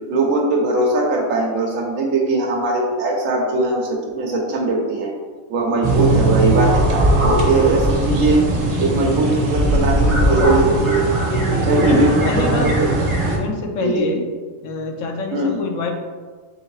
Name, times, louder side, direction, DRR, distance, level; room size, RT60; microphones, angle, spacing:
voice 1, 0.1-5.1 5.5-8.5 8.8-11.0 11.6-12.1 12.4-12.9 13.8-14.1 15.3-15.6, right 2 dB, 80° right, 0 dB, 1.2 m, -20 dB
sound 1, 5.8-13.4, right 2 dB, 60° right, 1.2 m, -19 dB
voice 2, 11.3-12.7 13.3-14.2 14.6-15.9, left 3 dB, 75° left, 3 dB, 1.0 m, -26 dB
3.9 x 3.6 x 3.1 m, 1.4 s
omnidirectional pair, 1.4 m